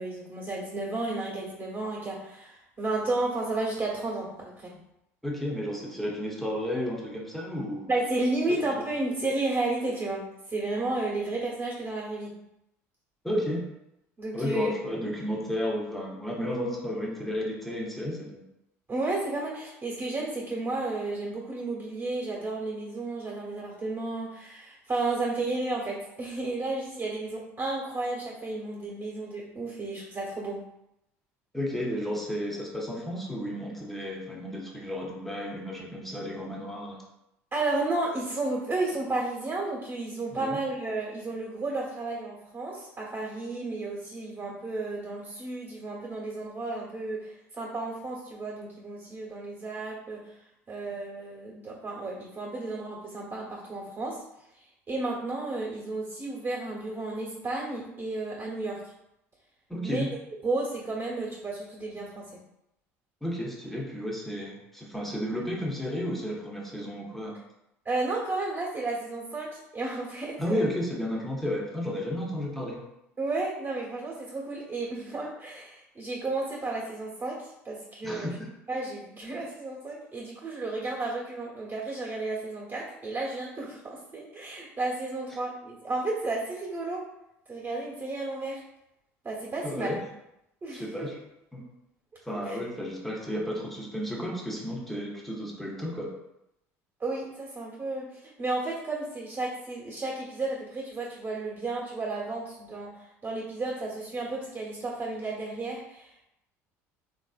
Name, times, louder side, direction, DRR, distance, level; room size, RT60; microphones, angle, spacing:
voice 1, 0.0-4.7 7.9-12.3 14.2-14.7 18.9-30.6 37.5-50.4 50.7-54.2 54.5-58.8 59.8-60.0 60.4-62.3 67.8-70.7 73.2-78.3 78.7-87.0 87.5-88.6 89.2-90.0 90.6-91.1 92.3-92.6 97.0-106.3, right 2 dB, 30° right, -4 dB, 1.2 m, -32 dB
voice 2, 5.2-7.9 8.5-8.7 13.2-13.6 14.3-18.4 31.5-37.0 40.3-40.6 59.7-60.1 63.2-67.4 70.4-72.8 78.0-78.5 89.6-90.0 90.7-91.1 91.5-91.7 92.2-96.1, equal, 5° left, -2 dB, 0.9 m, -32 dB
3.2 x 2.6 x 2.4 m, 0.85 s
hypercardioid pair, 75°, 7 cm